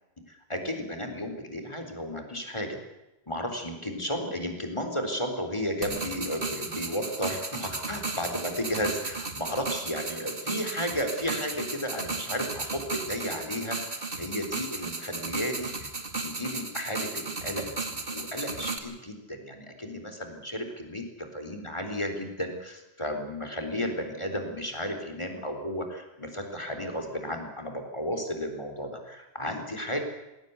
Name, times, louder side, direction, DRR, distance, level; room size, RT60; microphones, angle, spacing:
voice 1, 0.3-2.8 3.3-30.1, equal, 25° left, 4 dB, 4.0 m, -33 dB
sound 1, 5.8-18.8, right 3 dB, 60° right, 2.5 m, -35 dB
20.0 x 18.0 x 8.2 m, 0.97 s
omnidirectional pair, 1.1 m